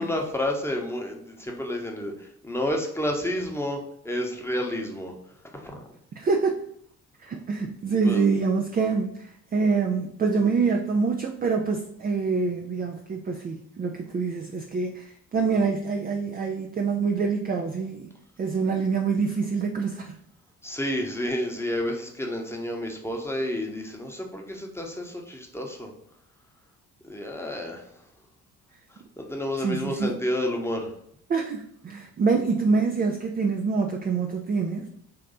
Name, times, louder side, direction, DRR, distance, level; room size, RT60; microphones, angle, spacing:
voice 1, 0.0-3.8 4.0-5.1 5.5-5.8 8.0-8.2 20.6-25.9 27.0-27.8 29.2-30.9, left 1 dB, 5° left, 1 dB, 1.0 m, -30 dB
voice 2, 6.2-6.6 7.2-18.1 18.4-20.2 29.6-30.1 31.3-34.8, right 4 dB, 20° right, 3 dB, 0.4 m, -26 dB
4.1 x 3.2 x 3.8 m, 0.71 s
figure-of-eight pair, 45°, 44 cm